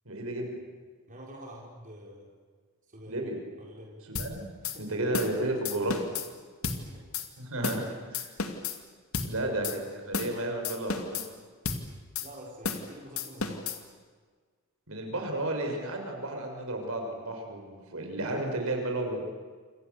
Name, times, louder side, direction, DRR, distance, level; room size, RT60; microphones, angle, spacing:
voice 1, 0.1-0.5 3.1-3.3 4.1-4.4 4.8-6.1 7.4-7.8 8.1-8.3 9.2-9.7 10.1-11.2 14.9-19.2, right 1 dB, 65° right, 3 dB, 6.1 m, -32 dB
voice 2, 1.1-2.3 2.9-3.2 3.6-4.0 4.6-5.0 6.6-7.0 9.4-9.9 12.2-13.7, equal, 35° right, -2 dB, 4.7 m, -47 dB
sound 1, 4.2-4.3 4.6-4.8 5.1-5.4 5.7-6.3 6.6-6.8 7.1-7.3 7.6-7.9 8.1-8.8 9.1-9.3 9.6-9.8 10.1-10.4 10.6-11.3 11.7-11.8 12.2-12.3 12.6-12.9 13.2-13.8, left 5 dB, 70° left, 2.5 m, -32 dB
28.5 x 27.0 x 7.0 m, 1.5 s
head